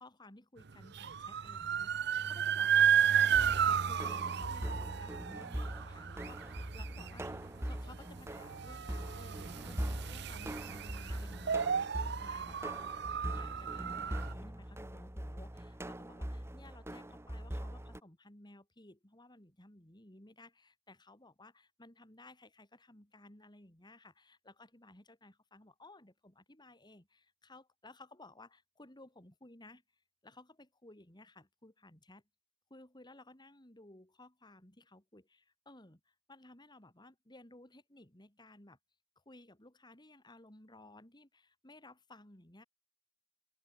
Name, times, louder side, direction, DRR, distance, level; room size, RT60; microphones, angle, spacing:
voice 1, 0.0-12.8 13.2-29.8 30.2-32.2 32.7-38.8 39.3-42.6, left 2 dB, 25° left, 3.6 m, -57 dB
sound 1, 0.7-14.3, right 8 dB, 60° right, 0.7 m, -33 dB
sound 2, 3.3-18.0, right 1 dB, 15° right, 1.3 m, -42 dB
open air
head